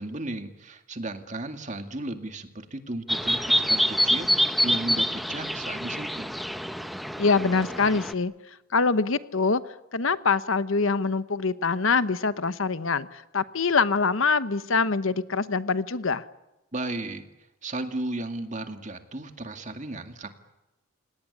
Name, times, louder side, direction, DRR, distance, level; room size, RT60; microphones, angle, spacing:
voice 1, 0.0-6.3 16.7-17.2 17.6-20.3, right 2 dB, 35° right, 7 dB, 2.2 m, -35 dB
sound 1, 3.1-8.1, equal, ahead, 0.8 m, -26 dB
voice 2, 7.2-8.3 8.7-9.6 9.9-16.2, left 4 dB, 70° left, 14 dB, 1.0 m, -24 dB
28.0 x 18.5 x 9.9 m, 0.97 s
head